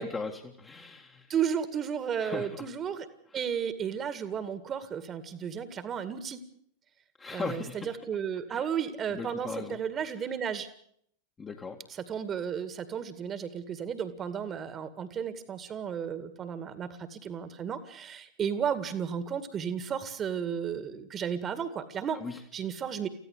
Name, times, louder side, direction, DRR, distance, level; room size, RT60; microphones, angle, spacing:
voice 1, 0.0-1.3 2.2-2.7 7.2-8.0 8.5-8.6 9.1-9.8 11.4-11.8 22.1-22.4, left 4 dB, 15° left, 1 dB, 1.9 m, -38 dB
voice 2, 1.3-3.1 3.3-6.4 7.3-10.7 12.0-22.2 22.5-23.1, right 8 dB, 25° right, 12 dB, 2.1 m, -33 dB
25.0 x 15.5 x 8.3 m, 0.67 s
figure-of-eight pair, 90°, 0 cm